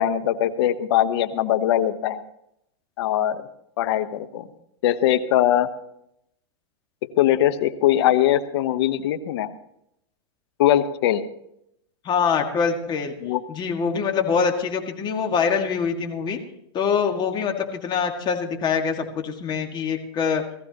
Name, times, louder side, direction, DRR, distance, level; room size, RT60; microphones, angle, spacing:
voice 1, 0.0-2.2 3.0-3.5 3.8-4.5 4.8-5.7 7.0-9.5 10.6-11.3 13.2-13.4, left 12 dB, 65° left, 11 dB, 1.1 m, -21 dB
voice 2, 12.0-13.1 13.5-16.4 16.7-20.4, left 6 dB, 30° left, 4 dB, 2.0 m, -24 dB
18.5 x 15.0 x 3.0 m, 0.77 s
hypercardioid pair, 125°, 14 cm